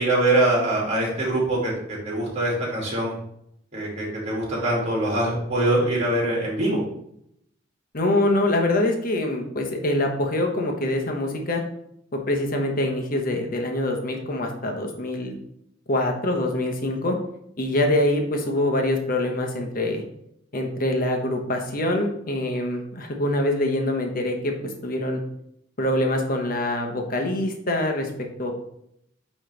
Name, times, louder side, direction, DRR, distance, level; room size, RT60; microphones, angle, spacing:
voice 1, 0.0-3.1 3.7-6.8, right 1 dB, 35° right, -3 dB, 2.3 m, -23 dB
voice 2, 7.9-11.6 12.3-15.3 15.9-17.2 17.6-20.0 20.5-25.2 25.8-28.1 28.4-28.5, left 1 dB, 45° left, 3 dB, 1.0 m, -24 dB
8.9 x 3.2 x 3.3 m, 0.74 s
head